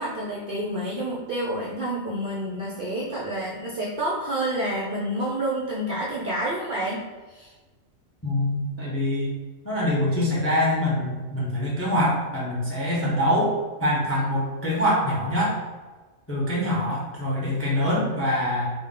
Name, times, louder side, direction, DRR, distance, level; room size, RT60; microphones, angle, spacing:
voice 1, 0.0-7.5, right 1 dB, 65° right, -5 dB, 0.5 m, -29 dB
voice 2, 8.2-9.3 9.6-15.6 16.3-18.7, left 1 dB, 20° left, -5 dB, 0.4 m, -24 dB
3.7 x 2.1 x 3.6 m, 1.3 s
omnidirectional pair, 1.4 m